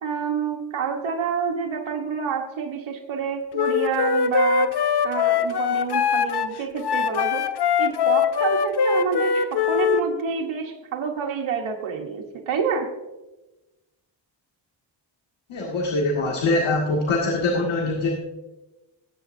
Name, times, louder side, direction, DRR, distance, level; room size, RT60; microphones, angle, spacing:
voice 1, 0.0-4.8 5.0-7.4 7.8-12.9, right 6 dB, 90° right, 1 dB, 1.2 m, -28 dB
Wind instrument woodwind instrument, 3.5-10.0, left 7 dB, 55° left, 0.7 m, -22 dB
voice 2, 15.5-18.1, left 2 dB, 85° left, -1 dB, 1.9 m, -23 dB
18.5 x 8.2 x 2.6 m, 1.0 s
cardioid pair, 90°, 46 cm